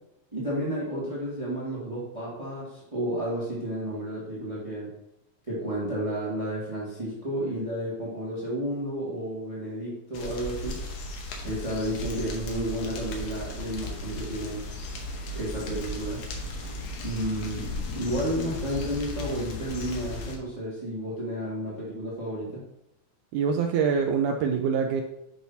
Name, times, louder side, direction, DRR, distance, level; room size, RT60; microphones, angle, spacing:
voice 1, 0.3-4.9 5.4-10.8 11.4-14.6 15.3-16.2 17.0-22.6, equal, 30° right, -7 dB, 0.6 m, -32 dB
sound 1, 10.1-20.4, left 1 dB, 70° left, 1.5 m, -36 dB
voice 2, 23.3-25.0, right 6 dB, 85° right, 4 dB, 1.7 m, -25 dB
7.8 x 5.7 x 2.7 m, 0.85 s
omnidirectional pair, 4.0 m